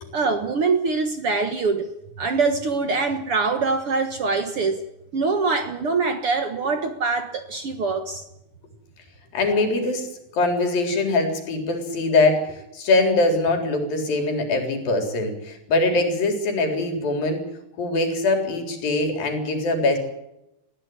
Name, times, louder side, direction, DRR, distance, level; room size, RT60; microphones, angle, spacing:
voice 1, 0.1-1.9 2.2-4.8 5.1-8.2, right 4 dB, 55° right, 7 dB, 1.7 m, -24 dB
voice 2, 9.3-10.1 10.3-17.4 17.8-20.0, left 2 dB, 85° left, 4 dB, 5.6 m, -22 dB
21.0 x 16.0 x 9.6 m, 0.87 s
omnidirectional pair, 4.0 m